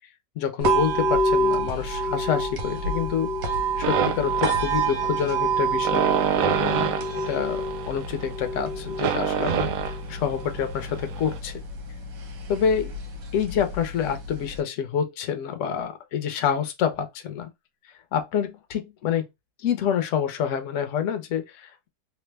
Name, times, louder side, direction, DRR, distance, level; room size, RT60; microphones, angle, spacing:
voice 1, 0.4-3.3 3.8-6.1 6.4-7.0 7.3-9.7 10.1-11.6 12.5-12.9 13.3-17.5 18.1-19.2 19.6-21.9, left 8 dB, 60° left, 0.8 m, -27 dB
sound 1, 0.6-14.6, right 2 dB, 90° right, 1.4 m, -28 dB
sound 2, 3.8-11.4, right 8 dB, 70° right, 0.9 m, -28 dB
3.3 x 2.1 x 3.2 m
omnidirectional pair, 1.8 m